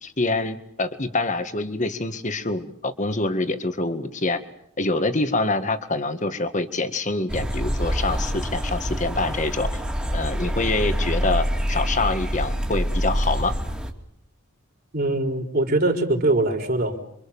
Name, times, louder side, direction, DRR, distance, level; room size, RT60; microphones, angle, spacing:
voice 1, 0.0-4.4 4.8-9.7 10.1-13.5, left 2 dB, 35° left, 9 dB, 1.8 m, -25 dB
sound 1, 7.3-13.9, equal, 5° right, 2.5 m, -26 dB
voice 2, 14.9-17.0, right 2 dB, 45° right, 3 dB, 4.0 m, -22 dB
28.0 x 25.0 x 7.2 m, 0.70 s
head